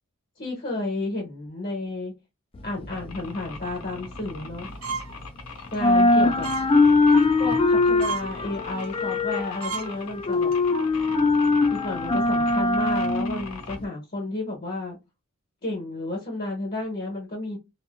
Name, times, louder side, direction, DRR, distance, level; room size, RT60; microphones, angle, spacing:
voice 1, 0.4-2.1 2.6-4.7 5.7-6.5 7.3-10.5 11.7-15.0 15.6-17.6, left 2 dB, 45° left, 1.0 m, -32 dB
sound 1, 2.5-5.4 5.7-13.8, left 3 dB, 25° left, 0.3 m, -22 dB
sound 2, 2.9-13.8, left 5 dB, 75° left, 0.7 m, -42 dB
sound 3, 4.8-5.2 5.6-5.8 6.4-6.7 7.1-7.3 7.7-7.8 8.0-8.3 8.8-8.9 9.3-9.4 9.6-9.9 10.3-10.5, right 5 dB, 70° right, 0.6 m, -32 dB
2.6 x 2.4 x 2.4 m
head